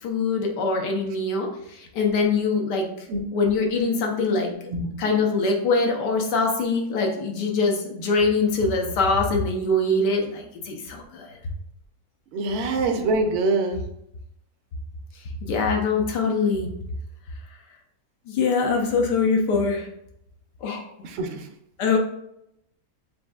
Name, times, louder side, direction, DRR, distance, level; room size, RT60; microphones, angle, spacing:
voice 1, 0.0-2.9 3.3-4.5 5.0-11.3 15.4-16.7 18.3-19.9 20.6-20.8 21.8-22.0, left 3 dB, 90° left, 1 dB, 1.4 m, -23 dB
voice 2, 12.3-13.8 21.0-21.5, right 3 dB, 65° right, 4 dB, 0.7 m, -24 dB
7.2 x 2.6 x 2.3 m, 0.80 s
omnidirectional pair, 1.8 m